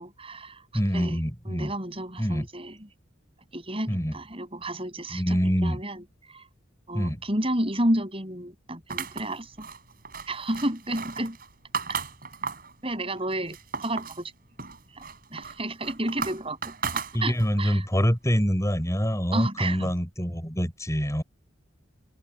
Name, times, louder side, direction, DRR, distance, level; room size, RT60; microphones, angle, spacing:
voice 1, 0.0-0.6 0.9-1.2 1.5-2.8 3.5-6.4 6.9-9.7 10.3-11.4 12.8-14.3 14.9-15.0 15.3-17.8 19.3-19.9, right 1 dB, 30° right, 7.4 m, -31 dB
voice 2, 0.7-1.7 2.2-2.5 3.9-4.2 5.1-5.8 6.9-7.2 17.1-21.2, equal, 15° left, 5.9 m, -25 dB
sound 1, 8.9-12.7 13.2-14.2 14.6-17.6, right 5 dB, 45° right, 4.4 m, -35 dB
head